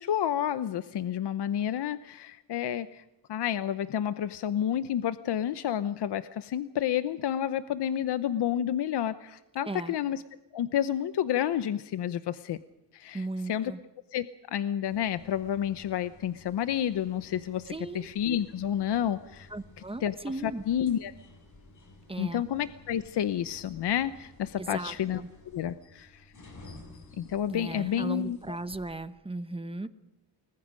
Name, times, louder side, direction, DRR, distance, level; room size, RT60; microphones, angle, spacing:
voice 1, 0.0-3.0 3.3-10.2 10.5-12.6 12.9-13.7 14.1-19.5 20.0-20.1 20.4-21.1 22.2-25.2 25.5-26.3 27.2-28.6, left 10 dB, 70° left, 11 dB, 0.9 m, -30 dB
voice 2, 13.1-13.8 17.7-18.1 19.5-20.6 22.1-22.4 24.6-25.3 27.5-29.9, right 2 dB, 15° right, 11 dB, 1.0 m, -37 dB
sound 1, 14.8-28.9, left 2 dB, 45° left, 7.3 m, -54 dB
30.0 x 21.0 x 5.2 m, 0.96 s
wide cardioid pair, 140°, 42 cm